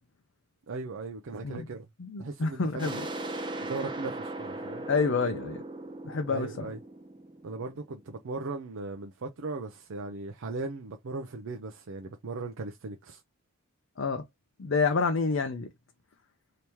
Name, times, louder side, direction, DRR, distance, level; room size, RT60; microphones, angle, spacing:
voice 1, 0.7-1.9 2.2-3.0 3.3-4.9 6.3-6.8 7.4-13.2, right 3 dB, 70° right, 0.5 m, -38 dB
voice 2, 2.0-3.0 4.9-5.6 6.0-6.7 14.0-14.2 14.6-15.7, left 4 dB, 65° left, 0.5 m, -28 dB
sound 1, 2.8-8.3, right 2 dB, 20° right, 0.5 m, -38 dB
3.0 x 2.8 x 3.4 m
head